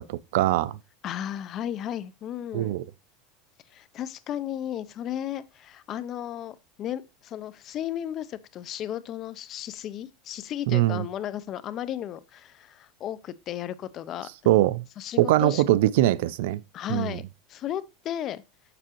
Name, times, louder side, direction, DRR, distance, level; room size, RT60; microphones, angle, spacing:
voice 1, 0.1-0.8 2.5-2.8 10.7-11.0 14.5-14.8 15.2-16.6 16.9-17.2, right 15 dB, 75° right, 0.4 m, -22 dB
voice 2, 1.0-2.8 3.7-14.3 15.0-15.6 16.7-17.2 17.5-18.4, left 11 dB, 35° left, 0.6 m, -34 dB
6.8 x 6.1 x 2.9 m
supercardioid pair, 140°, 0 cm